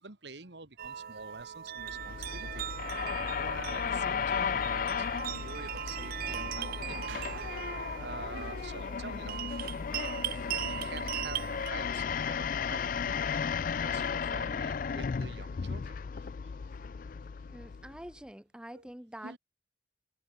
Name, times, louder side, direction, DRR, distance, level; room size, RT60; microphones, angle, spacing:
voice 1, 0.0-2.7 3.4-7.2 7.5-7.7 8.0-13.5 13.8-16.3 18.7-18.9 19.2-19.4, right 3 dB, 70° right, 2.0 m, -47 dB
sound 1, 0.8-11.7, right 10 dB, 50° right, 0.3 m, -39 dB
sound 2, 1.8-18.1, left 6 dB, 45° left, 0.3 m, -35 dB
sound 3, 7.1-11.4, right 6 dB, 90° right, 0.8 m, -53 dB
voice 2, 17.5-19.4, right 1 dB, 5° right, 0.6 m, -46 dB
head